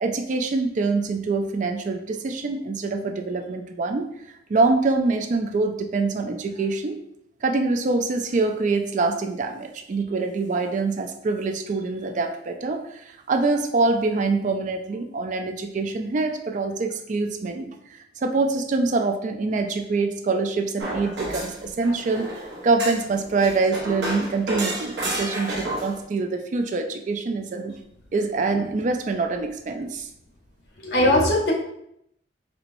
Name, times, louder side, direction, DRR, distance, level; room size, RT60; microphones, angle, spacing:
voice 1, 0.0-4.1 4.5-7.0 7.4-22.3 22.6-27.7 28.1-30.1, right 3 dB, 45° right, 5 dB, 0.3 m, -25 dB
sound 1, 20.8-26.0, right 1 dB, 70° right, 0.8 m, -31 dB
voice 2, 30.8-31.5, left 1 dB, 60° left, 0 dB, 0.9 m, -20 dB
4.4 x 3.0 x 2.6 m, 0.76 s
head